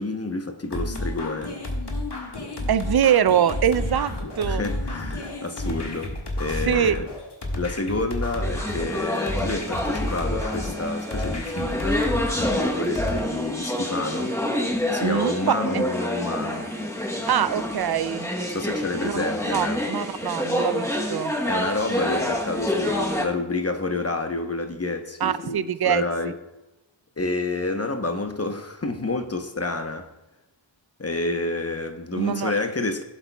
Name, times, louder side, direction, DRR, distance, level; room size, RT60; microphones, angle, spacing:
voice 1, 0.0-1.6 4.5-7.0 7.5-14.4 14.9-16.7 18.5-19.9 21.5-26.4 27.2-30.1 31.0-33.0, left 2 dB, 30° left, 0.9 m, -29 dB
sound 1, 0.7-13.2, left 1 dB, 55° left, 1.7 m, -31 dB
voice 2, 2.7-4.6 6.6-7.0 15.0-15.3 15.7-15.8 17.3-18.3 19.0-19.2 19.5-21.3 25.2-26.0 32.2-32.5, right 9 dB, 55° right, 0.5 m, -23 dB
sound 2, 8.4-23.3, left 1 dB, 5° left, 1.0 m, -27 dB
17.0 x 7.9 x 2.3 m
wide cardioid pair, 55°, 47 cm